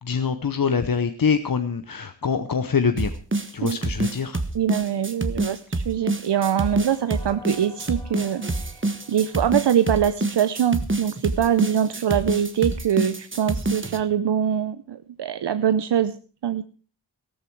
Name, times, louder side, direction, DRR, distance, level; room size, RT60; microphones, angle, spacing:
voice 1, 0.0-3.1 3.5-4.4, left 6 dB, 55° left, 9 dB, 0.9 m, -24 dB
sound 1, 3.0-14.0, right 2 dB, 30° right, 1.3 m, -27 dB
voice 2, 4.5-16.2 16.4-16.6, right 9 dB, 70° right, 12 dB, 0.7 m, -23 dB
sound 2, 5.6-10.8, left 2 dB, 5° left, 3.1 m, -50 dB
14.0 x 13.5 x 4.7 m, 0.39 s
cardioid pair, 50°, 43 cm